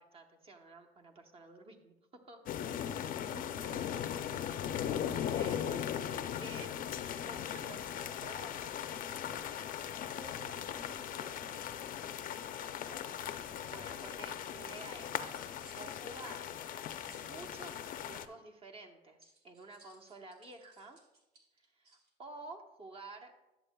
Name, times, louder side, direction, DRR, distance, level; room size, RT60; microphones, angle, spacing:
voice 1, 0.0-2.0 2.3-2.5 3.6-3.9 5.3-6.0 6.4-6.8 7.2-8.7 12.6-16.5 17.1-21.0 21.7-23.3, right 3 dB, 35° right, 3 dB, 1.0 m, -51 dB
sound 1, 2.5-18.3, left 9 dB, 55° left, 0.5 m, -39 dB
voice 2, 3.3-3.8 10.1-12.2, right 2 dB, 15° right, 5 dB, 0.4 m, -56 dB
sound 2, 15.3-17.7 19.2-22.1, right 2 dB, 75° right, 1.9 m, -64 dB
11.0 x 7.2 x 2.3 m, 0.96 s
cardioid pair, 110°, 17 cm